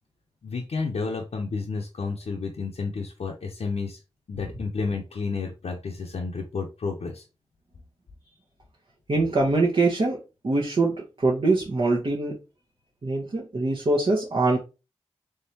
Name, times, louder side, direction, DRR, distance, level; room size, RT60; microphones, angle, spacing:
voice 1, 0.4-4.0 4.3-7.2, left 4 dB, 70° left, 0 dB, 0.7 m, -31 dB
voice 2, 9.1-10.2 10.4-12.4 13.0-14.6, right 3 dB, 55° right, -3 dB, 1.0 m, -23 dB
3.6 x 3.3 x 2.8 m, 0.29 s
cardioid pair, 45°, 11 cm